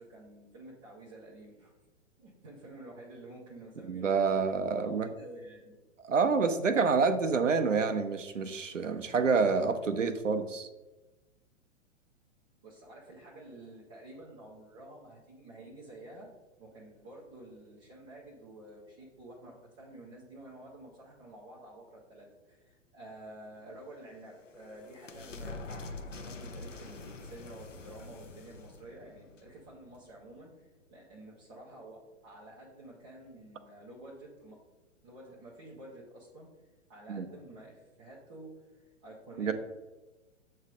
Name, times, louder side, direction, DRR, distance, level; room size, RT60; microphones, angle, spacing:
voice 1, 0.0-1.7 2.2-4.5 4.8-5.8 12.6-16.3 16.6-34.6 35.0-36.5 36.9-39.5, right 1 dB, 10° right, -7 dB, 0.3 m, -50 dB
voice 2, 3.8-5.1 6.0-10.7 37.1-37.3 39.4-39.5, right 5 dB, 80° right, 8 dB, 0.7 m, -28 dB
sound 1, 23.9-30.4, left 3 dB, 80° left, 0.8 m, -46 dB
7.1 x 3.2 x 5.1 m, 1.1 s
figure-of-eight pair, 110°, 37 cm